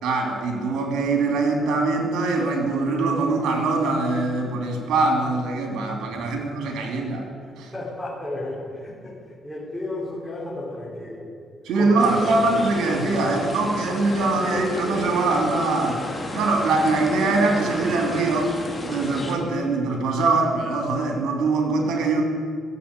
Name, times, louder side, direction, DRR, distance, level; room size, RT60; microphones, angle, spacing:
voice 1, 0.0-7.2 7.6-7.7 11.6-16.0 16.3-18.5 18.8-22.2, right 3 dB, 85° right, 2 dB, 2.9 m, -23 dB
voice 2, 6.0-6.3 6.8-6.9 7.4-11.3 11.6-12.7, left 2 dB, 5° left, -9 dB, 4.3 m, -33 dB
sound 1, 12.0-19.4, left 1 dB, 20° left, 2.9 m, -33 dB
14.5 x 7.8 x 9.1 m, 2.1 s
cardioid pair, 90°, 0 cm